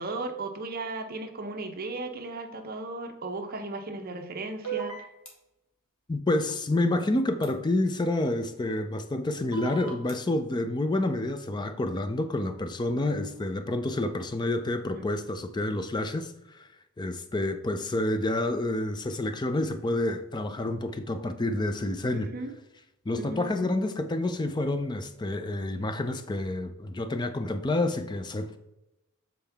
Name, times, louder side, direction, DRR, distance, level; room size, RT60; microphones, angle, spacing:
voice 1, 0.0-4.9 14.9-15.1 22.1-22.6 23.2-23.6, right 2 dB, 45° right, 0.7 m, -36 dB
sound 1, 4.6-5.3 7.4-7.5 9.5-10.1, right 8 dB, 70° left, 1.5 m, -35 dB
voice 2, 6.1-16.3 17.0-22.3 23.1-28.6, left 2 dB, 20° left, 0.4 m, -28 dB
7.3 x 4.4 x 3.4 m
head